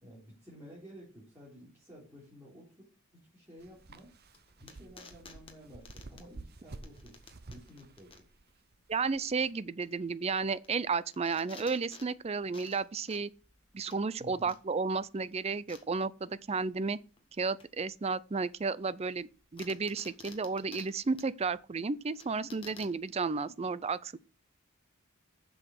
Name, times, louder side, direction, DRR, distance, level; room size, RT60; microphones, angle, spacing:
voice 1, 0.0-4.1 4.6-7.2 7.5-8.3 14.2-14.5, equal, 10° right, 3.6 m, -53 dB
sound 1, 3.6-9.5, right 2 dB, 45° right, 0.8 m, -51 dB
sound 2, 3.8-23.1, left 4 dB, 25° left, 1.5 m, -55 dB
voice 2, 8.9-13.3 13.7-17.0 17.4-24.2, right 4 dB, 30° right, 0.4 m, -33 dB
7.6 x 6.4 x 6.5 m
head